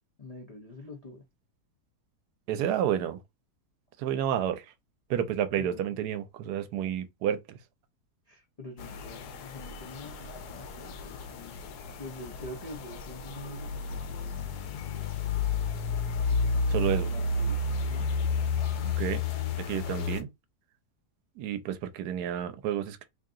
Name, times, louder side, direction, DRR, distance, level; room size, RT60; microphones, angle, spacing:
voice 1, 0.2-1.2 5.6-5.9 8.3-11.6 12.0-14.5 16.3-18.1, left 2 dB, 60° left, 0.4 m, -46 dB
voice 2, 2.5-3.2 4.0-4.6 5.1-7.6 16.7-17.1 18.8-19.2 19.7-20.3 21.4-23.0, right 10 dB, 80° right, 1.1 m, -30 dB
sound 1, 8.8-20.2, left 4 dB, 80° left, 1.2 m, -31 dB
3.0 x 2.7 x 3.6 m
omnidirectional pair, 1.7 m